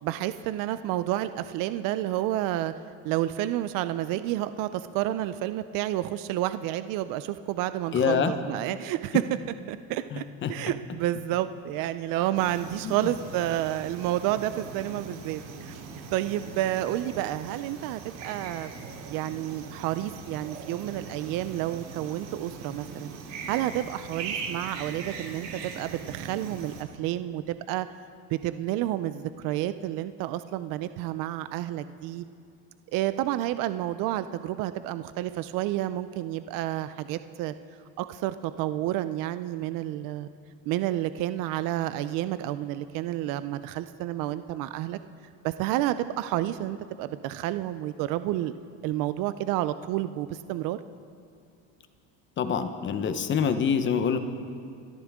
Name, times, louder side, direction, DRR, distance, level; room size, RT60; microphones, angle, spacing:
voice 1, 0.0-2.8 3.0-9.2 9.7-15.8 16.1-18.7 19.1-23.1 23.5-27.9 28.3-32.2 32.9-37.5 38.0-40.3 40.7-45.0 45.4-48.5 48.8-50.8, right 13 dB, 60° right, 12 dB, 0.6 m, -30 dB
voice 2, 7.9-8.3 10.1-10.5 12.8-12.9 52.4-54.2, left 7 dB, 30° left, 9 dB, 0.9 m, -26 dB
sound 1, 12.3-26.8, right 4 dB, 80° right, 2.5 m, -40 dB
27.5 x 13.5 x 3.6 m, 2.3 s
cardioid pair, 145°, 37 cm